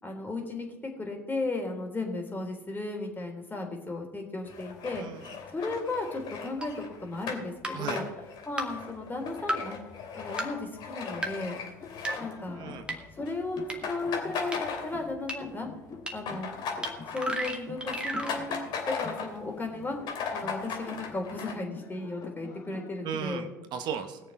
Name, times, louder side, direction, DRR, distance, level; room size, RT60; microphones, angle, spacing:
voice 1, 0.0-5.1 5.5-6.7 7.0-8.0 8.5-9.8 10.1-11.6 12.2-12.7 13.1-15.7 16.1-16.6 17.1-18.6 19.0-20.0 20.3-23.5, left 2 dB, 20° left, 2 dB, 3.6 m, -35 dB
sound 1, 4.5-12.9 13.1-13.3 13.6-15.3 15.7-19.4 19.8-19.9 20.0-21.5, left 6 dB, 55° left, 2.9 m, -38 dB
voice 2, 5.0-5.3 7.7-8.0 12.5-12.9 23.0-24.2, right 8 dB, 55° right, 8 dB, 1.1 m, -36 dB
sound 2, 6.6-6.7 7.6-7.7 8.6-8.7 9.5-9.6 10.4-10.5 11.2-11.3 12.0-12.1 12.9-13.0 13.7-13.8 14.5-14.6 15.3-15.4 16.1-16.2 16.8-16.9 17.1-18.3, right 1 dB, 10° right, 2.3 m, -31 dB
sound 3, 11.8-23.2, left 4 dB, 40° left, 2.2 m, -47 dB
20.0 x 6.9 x 5.3 m, 1.0 s
hypercardioid pair, 65°, 9 cm